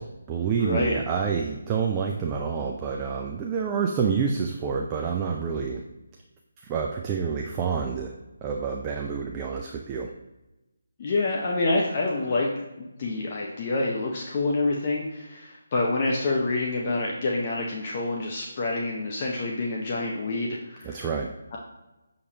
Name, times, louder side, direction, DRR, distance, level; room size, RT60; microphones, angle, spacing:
voice 1, 0.0-5.8 6.7-8.1 8.4-10.1 20.8-21.3, right 6 dB, 20° right, 1 dB, 0.4 m, -28 dB
voice 2, 0.6-1.0 11.0-12.5 12.8-21.1 21.5-21.6, left 2 dB, 35° left, -2 dB, 0.7 m, -27 dB
6.5 x 5.2 x 2.9 m, 1.0 s
figure-of-eight pair, 150°, 0 cm